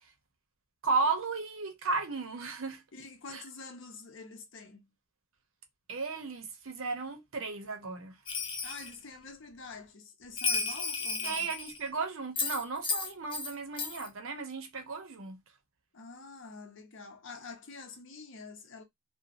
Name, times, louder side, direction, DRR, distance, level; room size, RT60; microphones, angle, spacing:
voice 1, 0.8-2.8 3.3-3.4 5.9-8.2 11.2-15.4, right 4 dB, 65° right, 0.7 m, -34 dB
voice 2, 2.9-4.9 8.6-11.5 15.9-18.8, left 4 dB, 60° left, 0.7 m, -47 dB
Bell, 8.3-8.9 10.4-11.9 12.4-13.5 13.8-14.1, left 4 dB, 20° left, 0.4 m, -33 dB
2.9 x 2.2 x 2.4 m
head